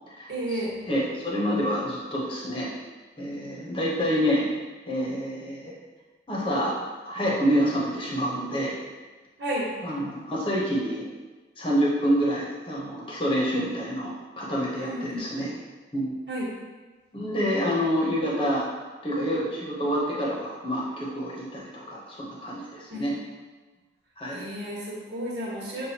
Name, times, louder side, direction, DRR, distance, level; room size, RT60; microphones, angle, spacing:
voice 1, 0.3-0.8 9.4-9.7 14.8-15.3 16.3-16.5 22.9-23.1 24.3-25.9, equal, 75° right, -6 dB, 1.4 m, -32 dB
voice 2, 0.9-2.7 3.2-4.5 4.9-5.7 6.3-6.8 7.0-8.8 9.8-11.1 11.6-15.5 15.9-16.1 17.1-18.6 19.0-23.1 24.2-24.4, equal, 30° left, -5 dB, 0.9 m, -27 dB
7.2 x 2.4 x 2.9 m, 1.3 s
head